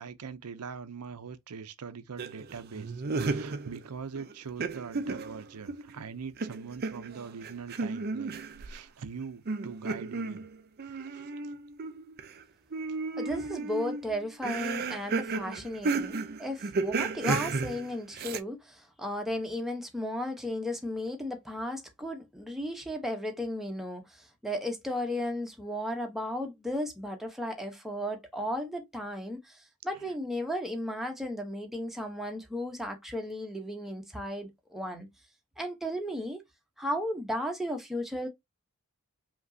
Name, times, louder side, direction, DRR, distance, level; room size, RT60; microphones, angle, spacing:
voice 1, 0.0-10.4 10.8-11.3 30.0-30.1, right 5 dB, 90° right, 0.6 m, -42 dB
sound 1, 2.2-3.9 4.2-6.0 6.4-8.8 9.5-12.4 12.7-18.4, right 4 dB, 45° right, 0.5 m, -34 dB
voice 2, 13.2-35.1 35.6-36.4 36.8-38.3, left 1 dB, ahead, 0.9 m, -35 dB
5.1 x 2.9 x 2.7 m
head